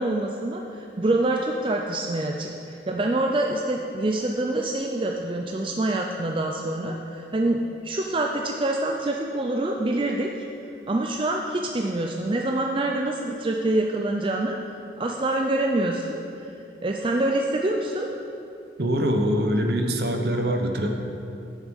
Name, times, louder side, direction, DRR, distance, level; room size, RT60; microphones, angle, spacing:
voice 1, 0.0-10.3 10.9-14.6 15.0-16.5 16.8-18.1, right 2 dB, 30° right, 1 dB, 0.4 m, -26 dB
voice 2, 18.8-20.9, equal, 60° right, 3 dB, 0.9 m, -23 dB
9.2 x 7.4 x 5.3 m, 2.7 s
head